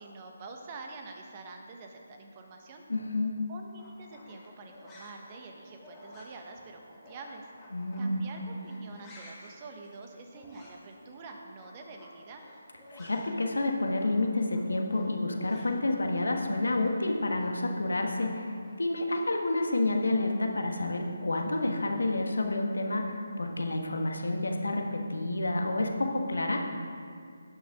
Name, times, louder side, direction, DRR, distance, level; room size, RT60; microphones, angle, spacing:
voice 1, 0.0-2.8 3.5-7.5 8.0-12.4, right 3 dB, 30° right, 3 dB, 1.2 m, -46 dB
voice 2, 2.9-3.5 7.7-8.3 12.9-26.6, left 2 dB, 80° left, 3 dB, 1.4 m, -29 dB
sound 1, 3.7-13.4 13.7-18.7, left 1 dB, 15° left, 2.1 m, -54 dB
18.0 x 6.2 x 3.6 m, 2.3 s
figure-of-eight pair, 155°, 0 cm